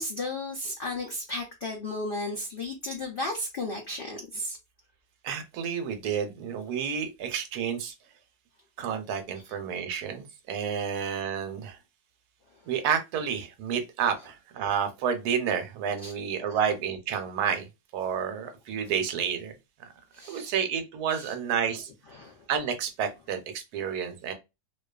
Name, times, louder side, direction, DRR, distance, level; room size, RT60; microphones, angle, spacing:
voice 1, 0.0-4.6 10.8-10.9 16.0-16.1 16.5-16.6 20.1-20.6 21.1-21.3 22.1-22.4, left 2 dB, 85° left, 0.4 m, -34 dB
voice 2, 5.2-7.9 8.8-11.8 12.7-17.7 17.9-19.5 20.3-21.9 22.5-24.3, right 7 dB, 75° right, 1.1 m, -30 dB
2.6 x 2.3 x 2.3 m
omnidirectional pair, 1.7 m